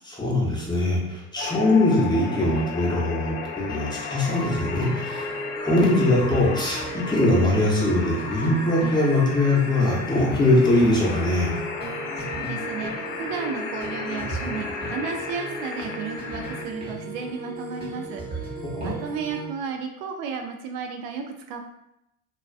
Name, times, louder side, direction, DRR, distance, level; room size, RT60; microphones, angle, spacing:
voice 1, 0.0-5.3 5.6-11.6 18.7-18.9, left 2 dB, 10° left, -4 dB, 0.7 m, -22 dB
sound 1, 1.4-16.6, left 5 dB, 80° left, 0.5 m, -34 dB
sound 2, 4.4-19.5, right 2 dB, 25° right, 0.8 m, -36 dB
voice 2, 12.2-18.5 18.8-21.6, right 5 dB, 70° right, 4 dB, 0.5 m, -33 dB
2.4 x 2.2 x 2.3 m, 0.80 s
hypercardioid pair, 85°, 40 cm